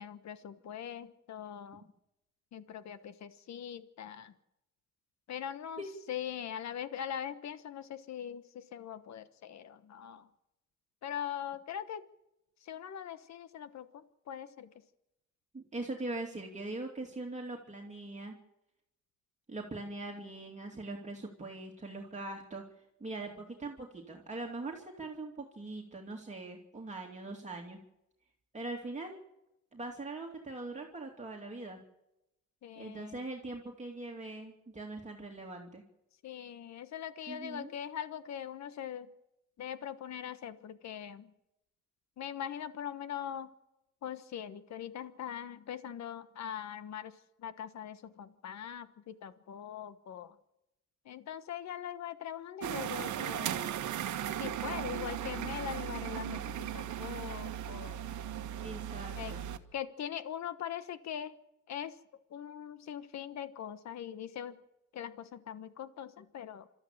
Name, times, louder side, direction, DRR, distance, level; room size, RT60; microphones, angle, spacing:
voice 1, 0.0-1.9 2.5-4.3 5.3-5.8 6.1-10.3 11.0-12.0 12.6-14.7 32.6-33.2 36.2-39.1 39.6-41.3 42.2-43.5 44.0-50.4 51.0-53.7 54.4-58.0 59.1-59.3 59.7-61.4 61.7-62.0 62.3-64.6 64.9-66.7, left 9 dB, 65° left, 12 dB, 1.3 m, -42 dB
voice 2, 15.5-18.4 19.5-22.6 23.0-27.8 28.5-29.2 29.7-31.8 32.8-35.8 37.3-37.7 58.6-59.5, right 2 dB, 25° right, -1 dB, 2.6 m, -41 dB
sound 1, 52.6-59.6, right 10 dB, 75° right, 1.2 m, -37 dB
27.5 x 13.5 x 7.3 m, 0.90 s
cardioid pair, 90°, 30 cm